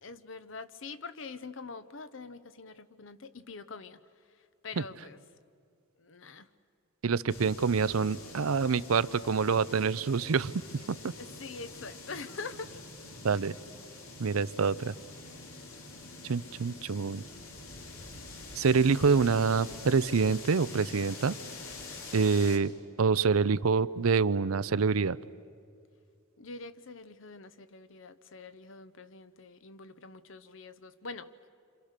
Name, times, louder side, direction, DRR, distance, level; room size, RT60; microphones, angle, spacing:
voice 1, 0.0-4.0 4.3-5.2 6.0-6.5 11.1-12.7 26.4-31.5, left 4 dB, 65° left, 0.9 m, -44 dB
voice 2, 7.0-10.5 10.9-11.1 13.2-13.5 14.2-14.9 16.2-17.2 18.6-21.4 22.1-22.7 23.0-25.2, right 5 dB, 90° right, 0.6 m, -26 dB
sound 1, 7.3-22.6, left 3 dB, 85° left, 2.7 m, -46 dB
29.0 x 26.5 x 6.7 m
head